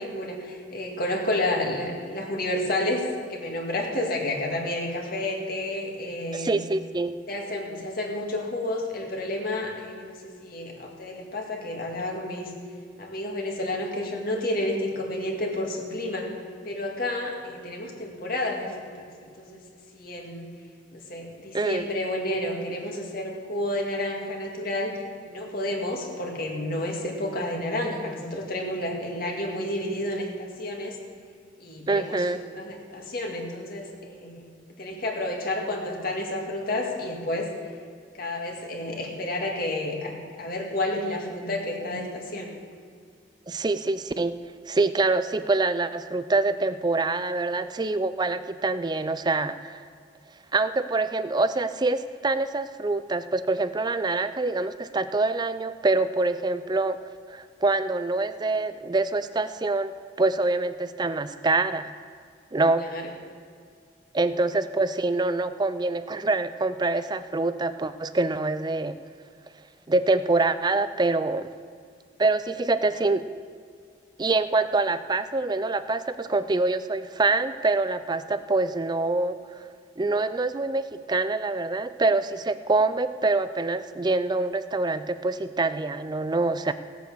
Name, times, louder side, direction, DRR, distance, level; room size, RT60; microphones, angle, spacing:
voice 1, 0.0-6.6 7.3-12.5 13.0-16.3 16.6-19.1 19.4-19.6 19.9-20.5 20.9-24.9 25.3-31.0 31.6-34.4 34.8-37.5 38.1-42.6 62.8-63.1, left 1 dB, 50° left, 0 dB, 2.0 m, -30 dB
voice 2, 6.3-7.1 21.5-21.9 31.9-32.4 43.5-44.3 44.7-49.8 50.5-61.9 62.5-62.9 64.1-69.0 69.9-71.5 72.2-73.3 74.2-79.7 80.0-86.7, right 3 dB, 20° right, 12 dB, 0.4 m, -25 dB
16.5 x 8.2 x 6.3 m, 2.2 s
head